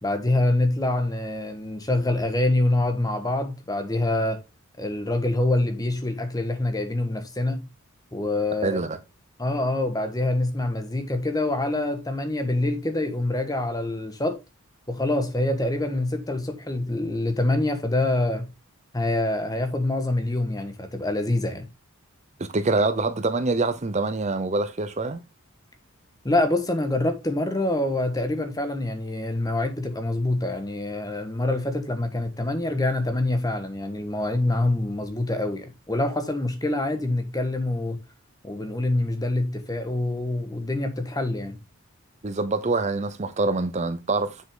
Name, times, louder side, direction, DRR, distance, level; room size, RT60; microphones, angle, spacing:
voice 1, 0.0-4.4 4.8-7.7 8.1-8.8 9.4-14.4 14.9-18.5 18.9-21.7 26.2-38.0 38.4-41.6, left 2 dB, 15° left, 1.3 m, -25 dB
voice 2, 8.6-9.0 22.4-25.2 42.2-44.4, right 3 dB, 30° right, 0.6 m, -25 dB
7.5 x 6.4 x 3.7 m
head